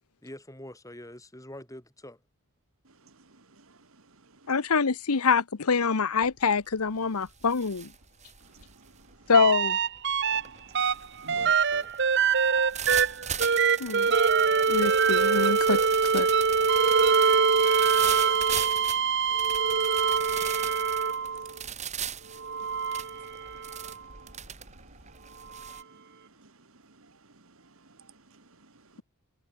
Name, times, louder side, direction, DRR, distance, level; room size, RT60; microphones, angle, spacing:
voice 1, 0.2-2.2 11.3-11.9, left 1 dB, 15° left, 5.2 m, -45 dB
voice 2, 2.8-4.6 8.4-9.3 10.3-11.6 12.7-14.0 14.5-14.8 17.0-29.0, right 3 dB, 65° right, 2.1 m, -57 dB
voice 3, 4.5-7.9 9.3-9.8 13.8-14.1 14.7-16.3, left 5 dB, 80° left, 0.9 m, -25 dB
sound 1, 6.2-6.5 6.9-25.8, right 8 dB, 30° right, 5.6 m, -39 dB
sound 2, 9.3-10.4 10.7-21.5 22.4-23.9 25.7-25.8, right 6 dB, 50° right, 1.1 m, -24 dB
head